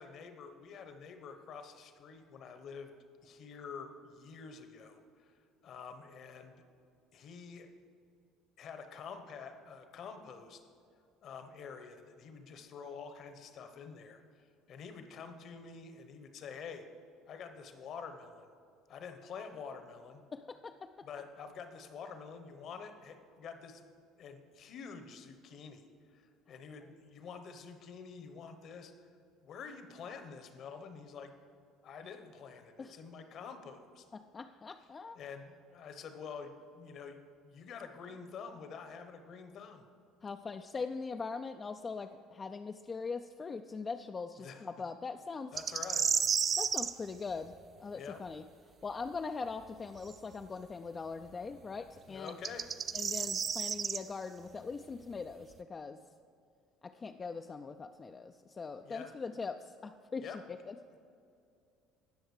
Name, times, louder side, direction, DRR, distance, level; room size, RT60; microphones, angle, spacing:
voice 1, 0.0-2.9 3.2-5.3 5.6-6.5 7.1-7.7 8.6-10.6 11.2-16.8 17.3-18.5 18.9-20.2 21.0-23.9 24.2-28.9 29.4-31.3 31.8-34.1 35.1-39.8 44.4-44.7 45.5-46.0 48.0-48.2 52.1-52.7 58.8-59.1 60.2-60.4, left 6 dB, 55° left, 8 dB, 0.9 m, -47 dB
voice 2, 20.3-20.9 32.8-33.0 34.3-35.2 40.2-45.6 46.6-48.4 48.8-52.4 52.9-56.0 56.8-60.7, left 4 dB, 30° left, 6 dB, 0.3 m, -41 dB
sound 1, 45.6-46.9 50.1-50.2 52.3-54.0, right 7 dB, 40° right, 0.4 m, -31 dB
18.5 x 6.3 x 3.2 m, 2.4 s
hypercardioid pair, 65°, 0 cm